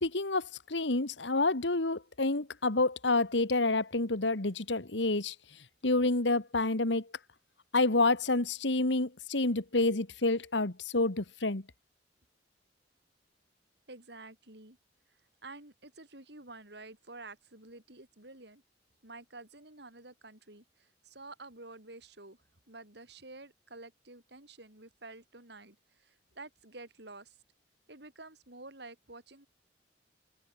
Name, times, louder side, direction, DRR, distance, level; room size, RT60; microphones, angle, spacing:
voice 1, 0.0-5.4 5.8-7.0 7.7-11.6, left 2 dB, 75° left, 1.9 m, -28 dB
voice 2, 13.9-14.8 15.1-18.6 19.0-27.4 27.9-29.5, right 2 dB, 65° right, 6.4 m, -50 dB
head